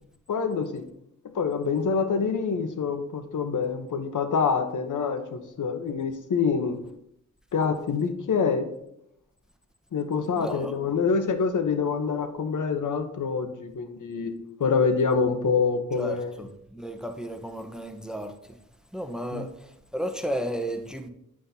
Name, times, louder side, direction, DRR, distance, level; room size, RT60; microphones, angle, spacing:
voice 1, 0.3-0.8 1.3-6.8 7.5-8.7 9.9-16.3 19.3-19.5, left 5 dB, 65° left, 0.9 m, -26 dB
voice 2, 10.4-10.8 15.9-18.6 18.9-21.1, equal, ahead, 0.9 m, -34 dB
9.9 x 5.8 x 2.7 m
cardioid pair, 60°, 33 cm